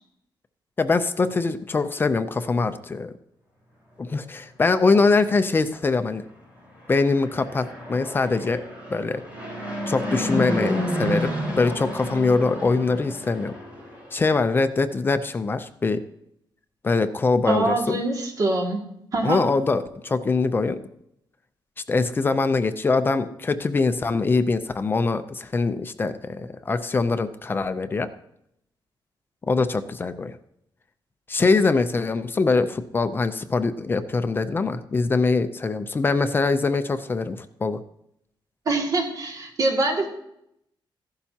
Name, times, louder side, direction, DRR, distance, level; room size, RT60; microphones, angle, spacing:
voice 1, 0.8-3.1 4.0-6.2 6.9-8.6 8.9-9.2 9.9-11.3 11.6-13.5 14.1-16.0 16.8-18.0 19.2-20.8 21.9-28.1 29.4-30.4 31.3-37.8, left 3 dB, 25° left, 10 dB, 0.5 m, -23 dB
Fixed-wing aircraft airplane, 6.8-14.2, equal, 15° right, 4.7 m, -30 dB
voice 2, 17.4-18.8 19.1-19.4 38.7-40.1, right 2 dB, 45° right, 0 dB, 2.2 m, -24 dB
15.0 x 11.5 x 2.8 m, 0.77 s
wide cardioid pair, 170°, 9 cm